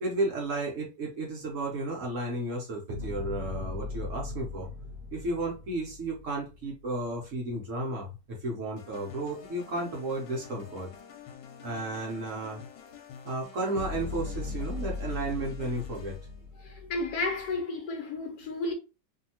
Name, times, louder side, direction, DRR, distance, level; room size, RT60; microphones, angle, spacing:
voice 1, 0.0-4.7 5.1-10.9 11.6-12.6 13.2-16.2, right 2 dB, 55° right, 1.0 m, -33 dB
sound 1, 2.9-7.2 13.8-17.5, left 3 dB, 75° right, 1.2 m, -39 dB
sound 2, 8.8-16.4, left 7 dB, 90° left, 1.3 m, -48 dB
voice 2, 16.6-18.7, left 3 dB, 70° left, 1.2 m, -32 dB
2.7 x 2.7 x 2.8 m
omnidirectional pair, 1.9 m